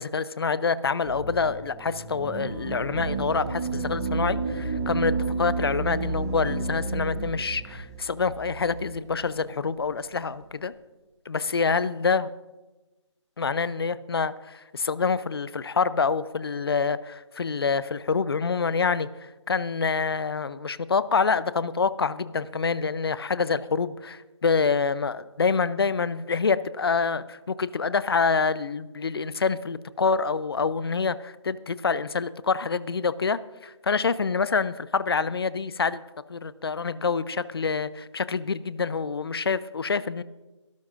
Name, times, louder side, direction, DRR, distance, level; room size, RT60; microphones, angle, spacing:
voice 1, 0.0-10.7 11.3-12.3 13.4-36.0 36.3-40.2, left 5 dB, 50° left, 17 dB, 0.6 m, -26 dB
sound 1, 1.0-7.3, left 1 dB, 5° left, 1.5 m, -44 dB
sound 2, 2.1-9.3, right 4 dB, 10° right, 0.5 m, -31 dB
23.5 x 12.5 x 2.5 m, 1.1 s
figure-of-eight pair, 155°, 16 cm